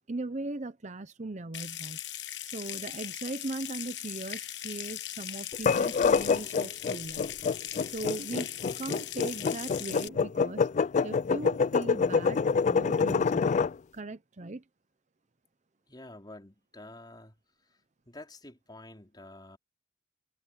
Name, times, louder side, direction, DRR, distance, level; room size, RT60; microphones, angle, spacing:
voice 1, 0.1-2.0 2.4-7.3 7.9-10.7 11.0-13.6 13.9-14.6, right 2 dB, 40° right, 0.8 m, -39 dB
Water tap faucet / Sink (filling or washing) / Trickle dribble, 1.5-10.1, left 12 dB, 80° left, 1.2 m, -39 dB
sound 1, 5.5-13.7, left 5 dB, 40° left, 0.3 m, -26 dB
voice 2, 15.9-17.3 18.1-19.6, left 2 dB, 25° left, 4.6 m, -48 dB
head